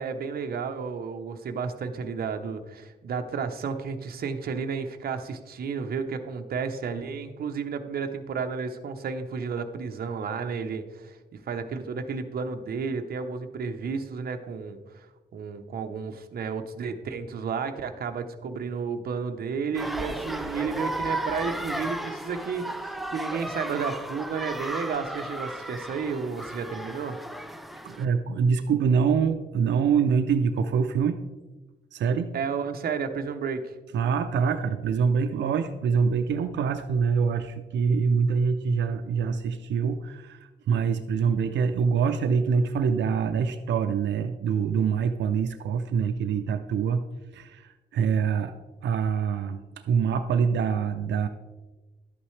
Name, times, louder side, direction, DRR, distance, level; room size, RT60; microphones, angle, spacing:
voice 1, 0.0-15.1 15.3-27.2 32.3-33.7, right 5 dB, 55° right, 6 dB, 0.8 m, -32 dB
sound 1, 19.7-28.0, right 1 dB, ahead, 0.3 m, -34 dB
voice 2, 27.8-31.2 31.9-32.3 33.9-47.0 47.3-49.6 49.9-51.3, right 6 dB, 85° right, 7 dB, 0.5 m, -25 dB
11.5 x 8.6 x 3.2 m, 1.2 s
wide cardioid pair, 165°, 18 cm